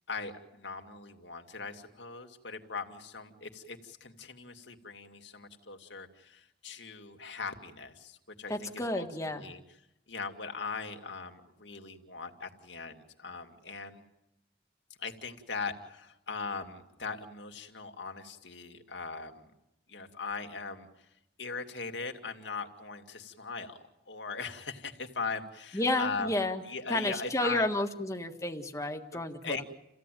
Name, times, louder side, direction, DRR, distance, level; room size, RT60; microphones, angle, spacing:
voice 1, 0.1-9.6 10.1-14.0 15.0-19.5 19.9-20.9 21.4-26.3 26.6-27.7 29.1-29.6, left 4 dB, 70° left, 5 dB, 2.3 m, -40 dB
voice 2, 8.5-9.5 25.7-26.6 26.9-29.6, left 1 dB, 15° left, 5 dB, 1.7 m, -31 dB
29.0 x 16.0 x 9.3 m, 0.91 s
head